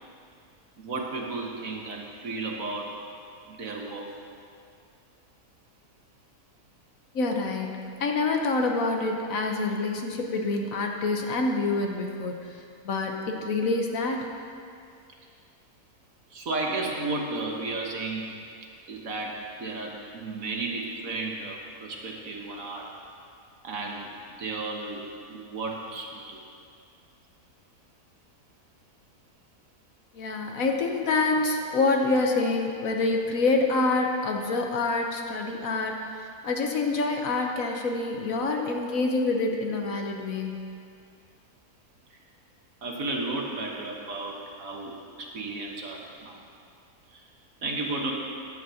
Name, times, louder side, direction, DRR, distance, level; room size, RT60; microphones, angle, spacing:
voice 1, 0.8-2.9 3.5-4.1 14.5-14.6 16.3-18.4 18.9-22.9 23.6-24.1 24.4-26.4 42.8-46.4 47.1-47.2 47.6-48.1, right 3 dB, 60° right, 0 dB, 1.6 m, -33 dB
voice 2, 7.1-14.3 30.1-40.7, left 3 dB, 65° left, 2 dB, 1.3 m, -27 dB
15.0 x 10.5 x 2.8 m, 2.4 s
omnidirectional pair, 1.6 m